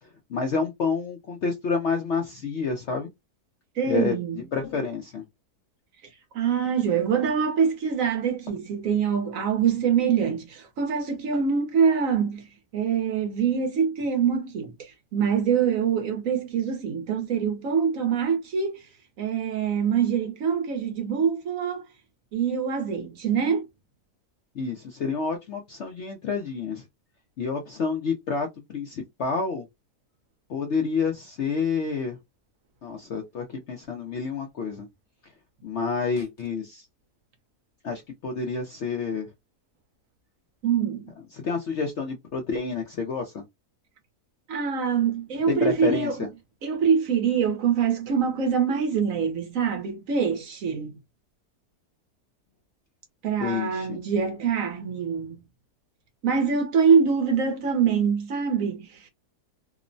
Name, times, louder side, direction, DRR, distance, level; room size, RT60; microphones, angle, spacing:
voice 1, 0.0-3.1 3.8-5.2 24.5-26.8 27.4-29.7 30.5-32.2 32.8-34.9 35.6-36.9 37.8-39.3 41.3-43.4 45.5-46.3 53.4-54.0, left 5 dB, 65° left, 0.7 m, -29 dB
voice 2, 3.8-4.4 6.3-12.5 12.7-18.8 19.2-21.8 22.3-23.7 40.6-41.1 44.5-46.1 46.6-51.0 53.2-55.4 56.2-59.1, right 6 dB, 65° right, 1.0 m, -24 dB
2.9 x 2.0 x 2.5 m
omnidirectional pair, 1.7 m